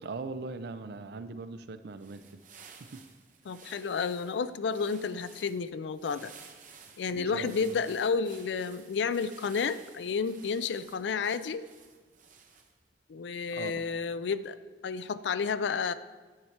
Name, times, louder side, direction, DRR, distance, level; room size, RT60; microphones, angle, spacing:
voice 1, 0.0-2.4 2.8-3.0 6.9-7.8 13.5-13.7, right 3 dB, 65° right, 12 dB, 0.5 m, -41 dB
sound 1, 1.8-12.9, right 6 dB, 50° right, 0.8 m, -54 dB
voice 2, 3.5-6.3 7.0-11.6 13.1-14.6 14.8-15.9, left 5 dB, 75° left, 14 dB, 0.4 m, -31 dB
9.7 x 5.7 x 4.5 m, 1.3 s
head